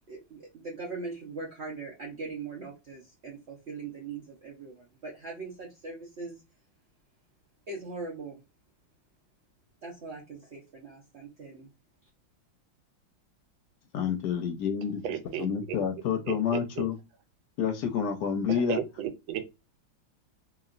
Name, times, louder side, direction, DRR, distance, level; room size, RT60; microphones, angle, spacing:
voice 1, 0.1-6.4 7.7-8.4 9.8-11.7, right 3 dB, 70° right, 0.6 m, -41 dB
voice 2, 13.9-15.0 15.4-17.0 17.6-18.8, left 7 dB, 70° left, 1.1 m, -28 dB
voice 3, 15.0-15.5 16.3-16.8 18.5-19.5, right 9 dB, 85° right, 1.4 m, -34 dB
2.9 x 2.7 x 2.4 m
omnidirectional pair, 2.1 m